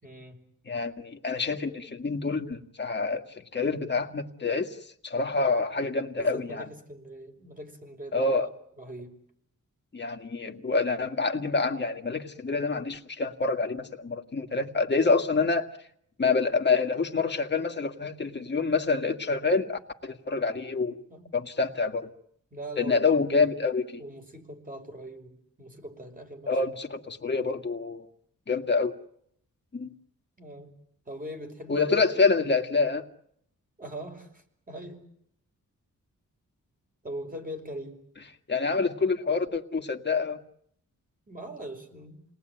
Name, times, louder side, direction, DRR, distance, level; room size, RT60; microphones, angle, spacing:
voice 1, 0.0-0.4 6.2-8.5 8.8-9.1 21.1-21.3 22.5-23.1 23.4-23.5 24.0-26.6 30.4-30.7 31.1-31.9 33.8-35.0 37.0-38.0 41.3-42.2, right 1 dB, 25° right, 4 dB, 5.4 m, -41 dB
voice 2, 0.7-4.8 5.0-6.7 8.1-8.5 9.9-15.7 16.2-21.0 21.3-22.1 22.8-23.9 26.5-28.1 28.5-29.0 29.7-29.9 31.7-33.1 38.5-40.4, left 4 dB, 35° left, 4 dB, 2.1 m, -27 dB
29.5 x 19.5 x 9.3 m, 0.71 s
wide cardioid pair, 110°, 32 cm